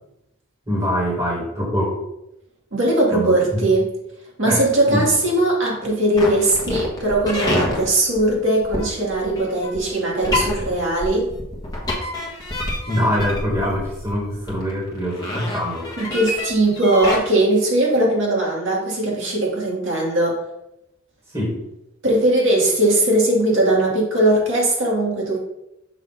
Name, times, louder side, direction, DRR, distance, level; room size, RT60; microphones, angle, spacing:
voice 1, 0.7-1.9 3.1-3.3 4.4-5.1 12.9-15.9 21.3-21.5, equal, 20° right, -7 dB, 1.7 m, -23 dB
voice 2, 2.7-3.9 4.4-11.3 16.0-20.4 22.0-25.4, right 1 dB, 60° right, -3 dB, 2.0 m, -19 dB
sound 1, 6.1-17.2, left 1 dB, 15° left, 1.1 m, -27 dB
6.4 x 2.8 x 5.6 m, 0.86 s
head